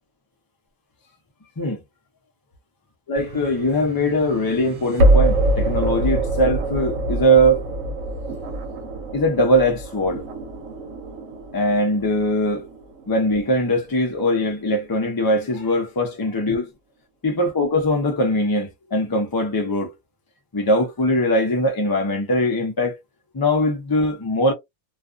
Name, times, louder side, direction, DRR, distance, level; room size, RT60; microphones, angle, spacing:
voice 1, 3.1-7.6 9.1-10.2 11.5-12.6 13.1-16.7 17.2-19.9 20.5-23.0 23.3-24.5, equal, 35° left, 0.3 m, -21 dB
sound 1, 3.2-14.2, right 1 dB, 75° right, 1.0 m, -25 dB
2.4 x 2.3 x 2.4 m
omnidirectional pair, 1.4 m